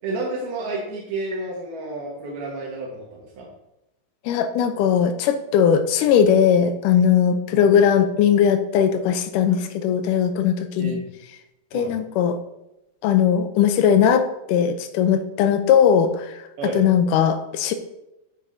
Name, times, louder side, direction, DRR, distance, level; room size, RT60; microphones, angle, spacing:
voice 1, 0.0-3.5 7.5-7.6 10.8-11.0 11.7-12.0 16.6-16.8, right 2 dB, 80° right, -4 dB, 3.2 m, -30 dB
voice 2, 4.3-11.0 11.7-12.4 13.0-16.4 16.7-17.7, left 8 dB, 85° left, 8 dB, 1.8 m, -19 dB
9.3 x 8.8 x 2.6 m, 0.91 s
omnidirectional pair, 4.4 m